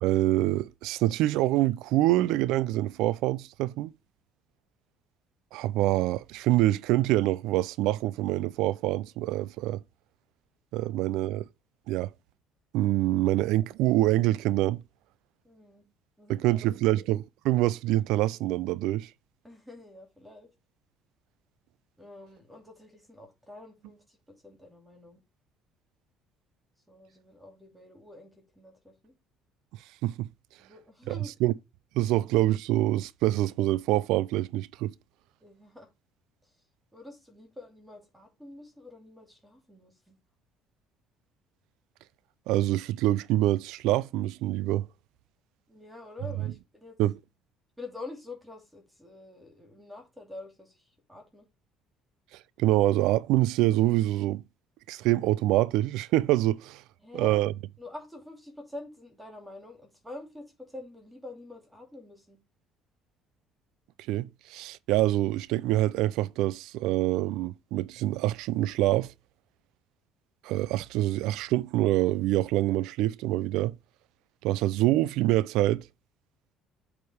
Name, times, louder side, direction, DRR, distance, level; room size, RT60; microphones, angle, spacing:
voice 1, 0.0-3.9 5.5-9.8 10.7-11.5 11.9-12.1 12.7-14.8 16.3-19.1 30.0-30.3 31.1-31.2 31.4-31.5 31.9-34.9 42.5-44.9 47.0-47.2 52.6-54.4 54.9-56.8 57.1-57.5 64.1-69.1 70.4-73.8 74.4-75.8, right 16 dB, 75° right, 0.4 m, -25 dB
voice 2, 15.4-15.8 16.2-16.7 19.4-20.5 22.0-25.2 26.9-29.1 30.6-31.3 35.4-35.9 36.9-40.2 45.7-47.0 47.8-51.4 57.0-57.4 57.8-62.4, left 2 dB, 5° right, 2.6 m, -46 dB
7.9 x 3.5 x 5.0 m
supercardioid pair, 85°, 0 cm